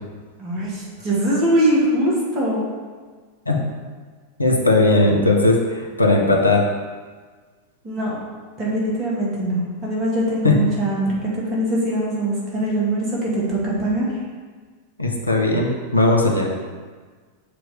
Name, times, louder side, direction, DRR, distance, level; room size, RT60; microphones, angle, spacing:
voice 1, 0.4-2.7 7.8-8.2 8.6-14.1, right 1 dB, 30° right, -5 dB, 1.9 m, -22 dB
voice 2, 4.4-6.6 10.4-10.5 15.0-16.5, left 2 dB, 85° left, 0 dB, 0.8 m, -17 dB
7.0 x 3.0 x 4.9 m, 1.5 s
figure-of-eight pair, 90°, 0 cm